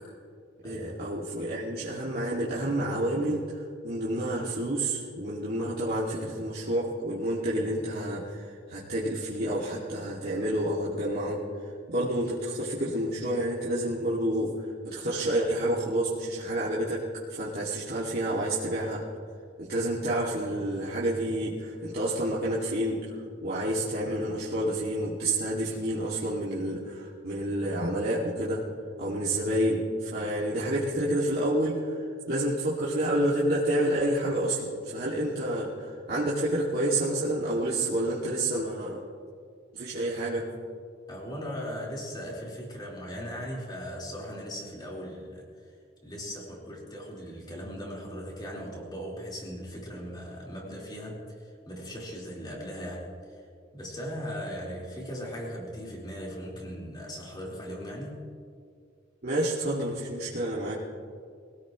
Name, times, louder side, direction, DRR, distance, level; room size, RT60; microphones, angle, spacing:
voice 1, 0.6-11.4 11.9-14.6 14.8-17.0 17.3-19.0 19.6-23.0 23.4-28.6 29.0-39.0 39.7-40.5 59.2-60.7, right 1 dB, 55° right, -8 dB, 2.4 m, -29 dB
voice 2, 41.1-45.8 46.0-53.4 53.7-58.3, equal, 25° left, -4 dB, 4.4 m, -38 dB
24.0 x 17.0 x 3.2 m, 2.2 s
head